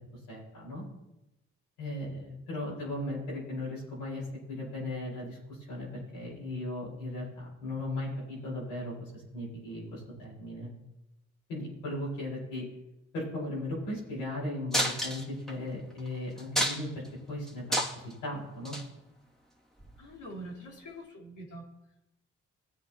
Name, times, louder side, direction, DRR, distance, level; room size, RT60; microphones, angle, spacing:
voice 1, 0.3-0.8 1.8-4.2 4.5-5.4 5.7-5.9 6.1-10.7 11.5-12.7 13.1-16.9 17.3-17.6 17.9-18.8, left 1 dB, 90° left, -7 dB, 5.6 m, -37 dB
sound 1, 14.7-15.5 16.0-16.1 16.4-17.1 17.5-18.1 18.6-18.8 19.8-19.9, equal, ahead, 2.8 m, -29 dB
voice 2, 20.0-21.7, right 1 dB, 55° left, -3 dB, 4.3 m, -44 dB
20.5 x 9.2 x 3.1 m, 0.95 s
hypercardioid pair, 40°, 35 cm